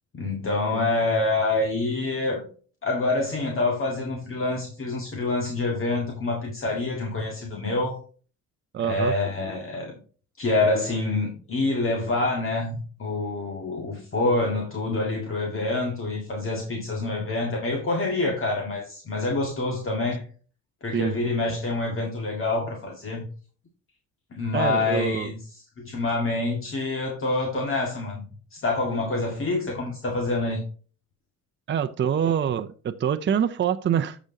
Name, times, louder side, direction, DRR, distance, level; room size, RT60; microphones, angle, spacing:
voice 1, 0.1-2.5 2.8-8.0 8.8-10.0 10.4-20.2 20.8-23.3 24.3-25.4 25.8-28.2 28.5-30.6, left 2 dB, 45° left, 2.0 m, -26 dB
voice 2, 8.7-9.1 20.9-21.1 24.5-25.3 31.7-34.2, right 8 dB, 40° right, 0.6 m, -25 dB
13.0 x 5.1 x 2.8 m
cardioid pair, 90°, 30 cm